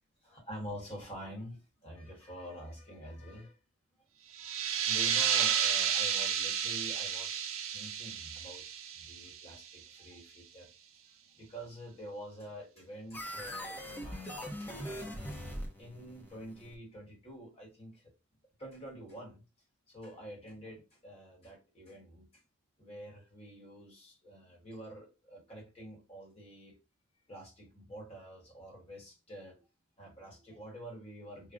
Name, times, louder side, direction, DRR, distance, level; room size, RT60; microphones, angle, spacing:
voice 1, 0.3-3.6 4.4-4.5 4.9-10.7 11.4-18.0 18.6-19.4 19.9-22.4 22.8-26.7 27.3-29.6 30.0-31.5, equal, 30° left, 1.2 m, -47 dB
sound 1, 4.3-9.7, right 8 dB, 75° right, 0.6 m, -32 dB
sound 2, 13.1-16.7, equal, 10° left, 0.7 m, -41 dB
5.0 x 2.1 x 2.5 m
head